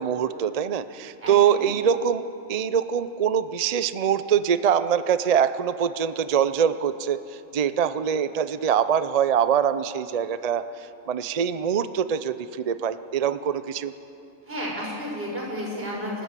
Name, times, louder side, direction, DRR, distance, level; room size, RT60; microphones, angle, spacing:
voice 1, 0.0-2.2 2.5-7.2 7.5-10.6 11.1-13.9, right 8 dB, 60° right, 13 dB, 0.4 m, -23 dB
voice 2, 1.2-1.7 14.5-16.2, equal, 45° right, -3 dB, 6.7 m, -32 dB
26.5 x 13.0 x 8.2 m, 2.8 s
omnidirectional pair, 1.4 m